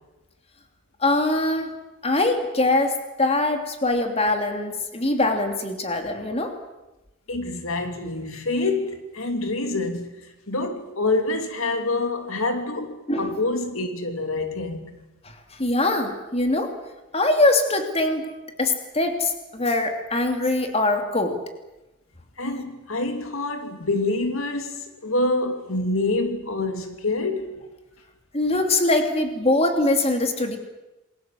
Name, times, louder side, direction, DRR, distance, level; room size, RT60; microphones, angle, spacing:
voice 1, 1.0-1.8 2.0-6.5 13.1-13.3 15.2-16.7 17.1-18.3 18.6-21.4 28.3-30.6, left 2 dB, 30° left, 2.9 m, -23 dB
voice 2, 7.3-10.2 10.5-14.9 22.4-27.7, left 2 dB, 75° left, 2.9 m, -26 dB
28.0 x 22.0 x 7.7 m
head